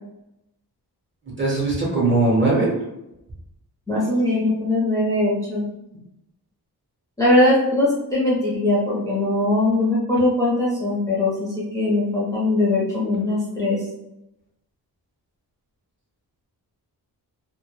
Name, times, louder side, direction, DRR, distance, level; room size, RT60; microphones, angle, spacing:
voice 1, 1.3-2.7, right 2 dB, 30° right, -4 dB, 0.7 m, -20 dB
voice 2, 3.9-5.6 7.2-13.8, left 2 dB, 10° left, -7 dB, 0.5 m, -21 dB
2.1 x 2.0 x 3.0 m, 0.87 s
wide cardioid pair, 155°, 39 cm